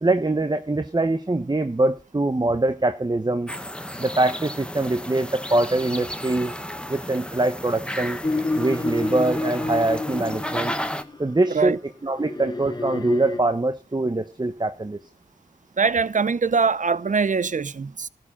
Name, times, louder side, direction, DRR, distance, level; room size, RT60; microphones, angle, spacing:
voice 1, 0.0-3.5 4.0-6.5 6.9-8.2 8.6-10.7 11.2-15.0, right 2 dB, 25° right, 0.9 m, -23 dB
sound 1, 3.5-11.0, equal, 5° left, 1.1 m, -33 dB
sound 2, 8.2-11.2 12.2-13.4, left 2 dB, 25° left, 1.3 m, -29 dB
voice 2, 15.8-18.1, right 5 dB, 45° right, 0.6 m, -22 dB
13.0 x 4.8 x 8.7 m
cardioid pair, 45°, 17 cm